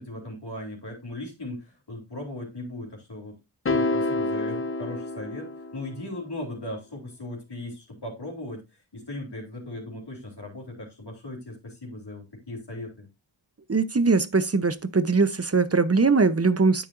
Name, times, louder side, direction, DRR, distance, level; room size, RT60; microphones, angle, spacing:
voice 1, 0.0-3.4 3.7-8.6 8.9-13.1, left 1 dB, 60° left, 3.4 m, -38 dB
sound 1, 3.7-6.1, left 2 dB, 30° left, 0.7 m, -28 dB
voice 2, 13.7-16.9, right 4 dB, 30° right, 0.9 m, -21 dB
9.9 x 7.3 x 2.6 m
wide cardioid pair, 60°, 46 cm